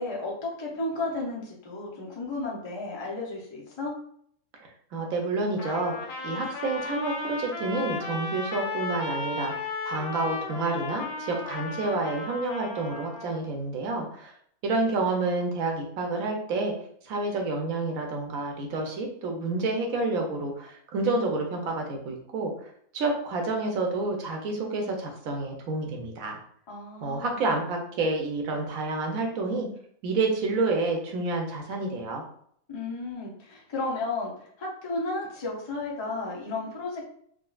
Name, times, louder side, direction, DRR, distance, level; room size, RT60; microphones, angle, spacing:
voice 1, 0.0-3.9 26.7-27.4 32.7-37.1, left 2 dB, 45° left, -4 dB, 0.3 m, -33 dB
voice 2, 4.9-14.3 14.6-16.7 17.0-26.4 27.0-29.7 30.0-32.2, right 3 dB, 70° right, 2 dB, 1.0 m, -29 dB
Trumpet, 5.6-13.4, left 3 dB, 80° left, 1.1 m, -35 dB
3.6 x 2.3 x 2.3 m, 0.64 s
omnidirectional pair, 1.6 m